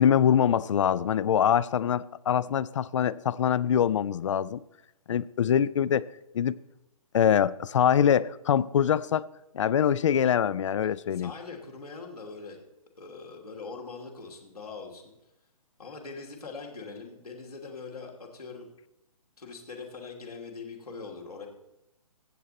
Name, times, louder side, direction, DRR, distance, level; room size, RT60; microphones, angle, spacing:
voice 1, 0.0-4.6 5.1-6.1 6.3-6.6 7.1-9.3 9.5-11.3, left 9 dB, 55° left, 0.4 m, -24 dB
voice 2, 11.1-12.6 13.0-15.1 15.8-18.7 19.4-21.5, left 4 dB, 80° left, 2.5 m, -42 dB
15.5 x 7.5 x 4.1 m
figure-of-eight pair, 140°, 19 cm